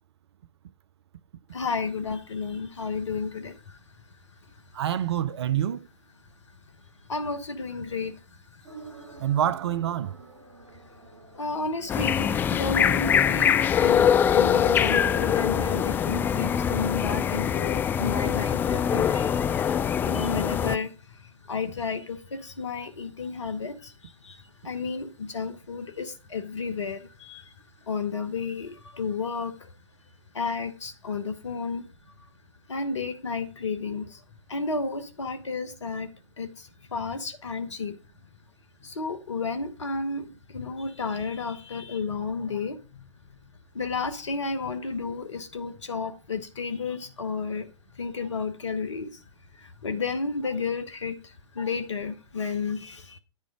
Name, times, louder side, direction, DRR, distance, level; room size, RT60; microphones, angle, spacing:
voice 1, 1.5-3.8 7.1-8.1 8.6-9.2 11.3-27.5 27.9-29.7 30.3-31.9 32.7-34.2 34.5-36.1 36.4-38.0 38.8-43.0 43.7-47.7 48.0-49.2 49.5-53.2, left 4 dB, 75° left, 1.1 m, -32 dB
voice 2, 4.7-5.9 9.2-10.1, right 10 dB, 60° right, 0.5 m, -26 dB
sound 1, 8.6-15.8, right 2 dB, 75° right, 2.7 m, -45 dB
sound 2, 11.9-20.8, left 8 dB, 15° left, 0.3 m, -23 dB
10.5 x 5.0 x 4.9 m
figure-of-eight pair, 110°, 15 cm